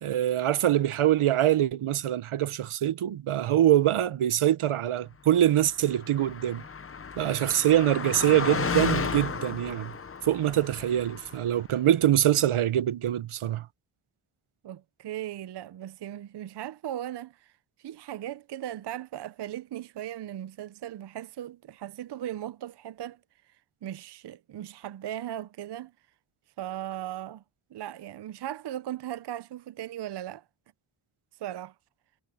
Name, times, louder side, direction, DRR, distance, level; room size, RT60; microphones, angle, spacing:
voice 1, 0.0-6.6 7.2-9.9 10.2-13.7, right 12 dB, 80° right, 0.8 m, -24 dB
Car passing by, 5.6-11.6, left 5 dB, 30° left, 0.7 m, -33 dB
voice 2, 14.6-17.5 17.8-23.2 23.8-25.9 26.6-27.4 27.7-30.4 31.4-31.7, right 12 dB, 55° right, 0.5 m, -37 dB
wide cardioid pair, 135°, 50 cm